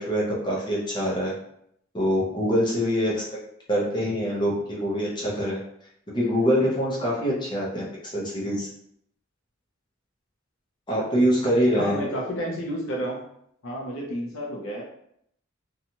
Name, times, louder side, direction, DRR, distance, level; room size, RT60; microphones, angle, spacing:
voice 1, 0.0-1.3 1.9-3.2 3.7-5.6 6.1-8.7 10.9-12.2, equal, 20° left, -5 dB, 0.7 m, -24 dB
voice 2, 11.7-13.2 13.6-14.8, equal, 80° left, -2 dB, 0.7 m, -30 dB
2.9 x 2.3 x 2.7 m, 0.72 s
head